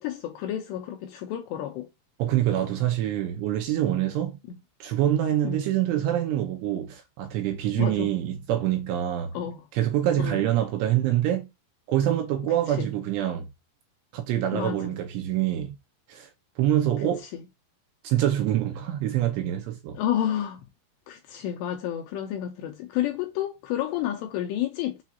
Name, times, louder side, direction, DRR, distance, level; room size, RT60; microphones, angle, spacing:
voice 1, 0.0-1.9 4.5-4.6 5.4-5.7 7.8-8.1 9.3-9.7 10.2-10.5 12.7-12.9 14.5-15.0 17.0-17.4 19.9-20.6 21.1-25.0, left 11 dB, 85° left, 2.5 m, -30 dB
voice 2, 2.2-4.4 4.8-9.3 9.7-11.5 11.9-13.5 14.1-15.8 16.1-16.3 16.6-17.2 18.0-20.0, right 12 dB, 80° right, 2.7 m, -25 dB
7.2 x 2.5 x 2.8 m
omnidirectional pair, 5.5 m